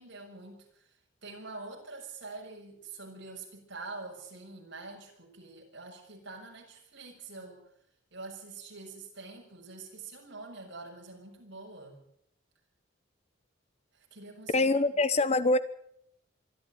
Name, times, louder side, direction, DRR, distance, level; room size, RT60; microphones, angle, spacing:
voice 1, 0.0-7.6 8.1-12.0 13.9-14.8, right 3 dB, 60° right, 2 dB, 6.7 m, -45 dB
voice 2, 14.5-15.6, left 2 dB, 35° left, 14 dB, 1.0 m, -24 dB
24.0 x 13.5 x 9.2 m, 0.72 s
head